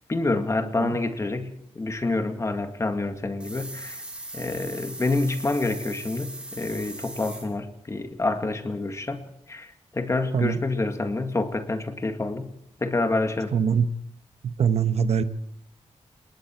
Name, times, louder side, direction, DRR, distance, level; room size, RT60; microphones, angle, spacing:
voice 1, 0.1-4.0 4.3-12.5 12.8-13.5, left 2 dB, 25° left, 7 dB, 2.0 m, -27 dB
voice 2, 0.6-1.0 10.3-10.6 13.5-13.9 14.4-15.2, right 7 dB, 70° right, 11 dB, 1.1 m, -23 dB
sound 1, 3.4-7.4, right 1 dB, 10° right, 6.0 m, -39 dB
28.5 x 20.5 x 4.5 m, 0.74 s
wide cardioid pair, 155°, 11 cm